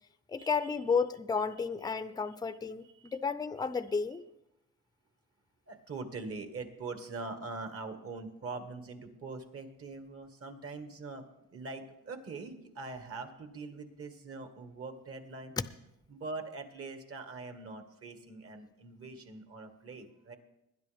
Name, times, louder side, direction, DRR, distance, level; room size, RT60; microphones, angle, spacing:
voice 1, 0.3-4.2, left 5 dB, 15° left, 13 dB, 0.5 m, -32 dB
voice 2, 5.7-11.3 11.5-15.5 16.1-20.4, right 3 dB, 50° right, 6 dB, 1.9 m, -43 dB
20.5 x 10.5 x 3.5 m, 0.88 s
cardioid pair, 90°, 30 cm